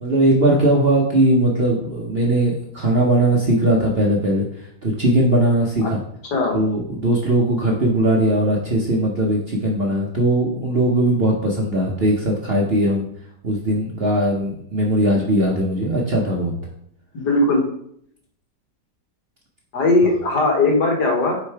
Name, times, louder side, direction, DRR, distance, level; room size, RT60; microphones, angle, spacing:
voice 1, 0.0-6.0 6.5-13.1 13.4-16.5, right 1 dB, 45° right, -2 dB, 0.8 m, -19 dB
voice 2, 6.3-6.6 17.1-17.6 19.7-21.4, left 2 dB, 65° left, 2 dB, 1.7 m, -18 dB
6.7 x 3.7 x 4.6 m, 0.69 s
omnidirectional pair, 1.9 m